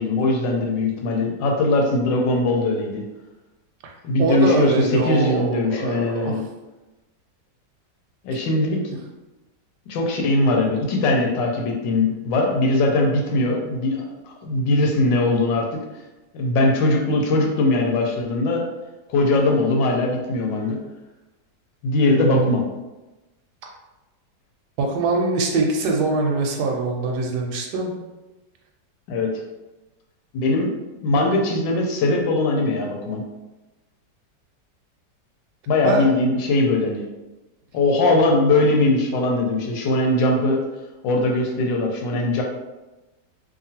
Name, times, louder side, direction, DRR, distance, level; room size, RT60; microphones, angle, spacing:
voice 1, 0.0-3.0 4.0-6.4 8.2-8.8 9.9-14.0 14.4-15.8 16.3-18.6 19.1-20.8 21.8-22.6 29.1-29.3 30.3-30.7 31.0-33.2 35.7-37.0 37.7-40.6 41.0-42.4, left 2 dB, 85° left, 1 dB, 1.3 m, -20 dB
voice 2, 4.2-6.4 22.1-22.5 24.8-27.9 35.8-36.0, right 3 dB, 75° right, 1 dB, 1.1 m, -23 dB
2.9 x 2.5 x 2.7 m, 1.1 s
omnidirectional pair, 2.0 m